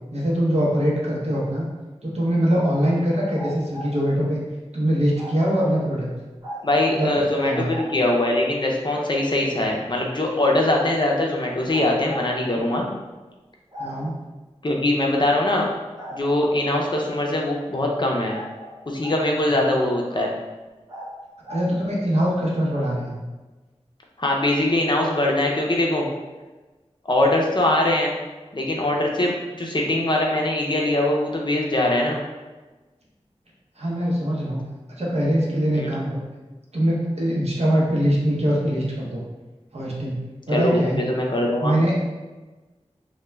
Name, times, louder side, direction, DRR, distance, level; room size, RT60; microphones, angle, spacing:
voice 1, 0.1-1.7 2.0-4.4 4.7-6.1 6.9-7.8 13.8-14.1 19.6-19.7 21.5-23.2 33.8-34.6 35.0-36.2 36.7-39.2 39.7-40.2 40.5-41.0 41.6-42.0, equal, 65° right, -4 dB, 0.7 m, -22 dB
sound 1, 3.3-3.9 5.2-5.7 6.4-6.9 7.7-7.9 9.7-9.8 11.7-12.3 13.7-13.9 16.0-16.6 18.3-19.2 20.9-21.1 21.4-21.7, right 1 dB, 35° right, 0.9 m, -37 dB
voice 2, 6.6-12.9 14.6-15.7 16.1-18.4 18.9-20.3 24.2-26.1 27.1-28.1 28.5-32.2 35.7-35.9 40.5-41.7, left 1 dB, 40° left, -1 dB, 0.5 m, -22 dB
2.2 x 2.1 x 3.1 m, 1.2 s
wide cardioid pair, 40°, 12 cm